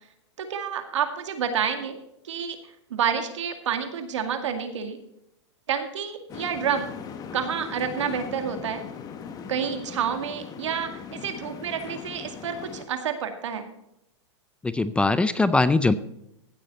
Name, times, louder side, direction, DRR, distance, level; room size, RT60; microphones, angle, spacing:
voice 1, 0.4-2.0 2.2-2.6 2.9-5.0 5.7-6.9 7.3-8.8 9.5-13.7, right 7 dB, 80° right, 7 dB, 2.1 m, -29 dB
sound 1, 6.3-12.9, left 6 dB, 25° left, 1.2 m, -39 dB
voice 2, 14.6-15.9, left 3 dB, 5° left, 14 dB, 0.4 m, -21 dB
16.0 x 7.6 x 4.2 m, 0.81 s
hypercardioid pair, 130°, 15 cm